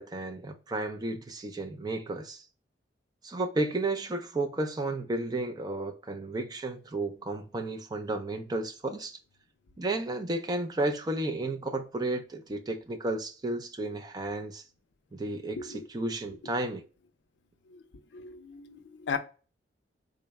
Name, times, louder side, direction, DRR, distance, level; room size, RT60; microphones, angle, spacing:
voice 1, 0.0-2.4 3.2-9.2 9.8-14.6 15.1-16.8, right 2 dB, 25° right, 0.4 m, -33 dB
voice 2, 18.1-19.2, left 5 dB, 70° left, 0.4 m, -37 dB
3.7 x 2.1 x 3.4 m
head